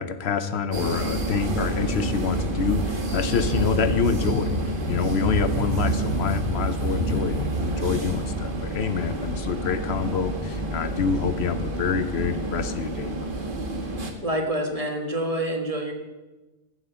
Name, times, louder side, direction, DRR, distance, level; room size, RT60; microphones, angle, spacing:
voice 1, 0.0-13.5, left 6 dB, 75° left, 12 dB, 1.0 m, -27 dB
sound 1, 0.7-14.1, right 2 dB, 50° right, 1.6 m, -28 dB
voice 2, 14.2-15.9, right 1 dB, 30° right, 2 dB, 1.8 m, -27 dB
14.0 x 8.0 x 6.9 m, 1.1 s
omnidirectional pair, 1.1 m